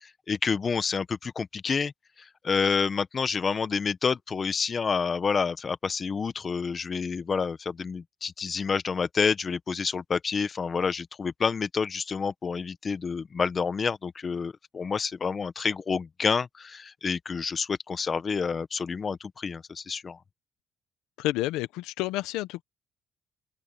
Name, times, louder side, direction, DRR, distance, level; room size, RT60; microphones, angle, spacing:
voice 1, 0.0-1.9 2.2-20.2, left 5 dB, 40° left, 1.3 m, -28 dB
voice 2, 21.2-22.6, left 17 dB, 90° left, 0.8 m, -30 dB
supercardioid pair, 80°, 0 cm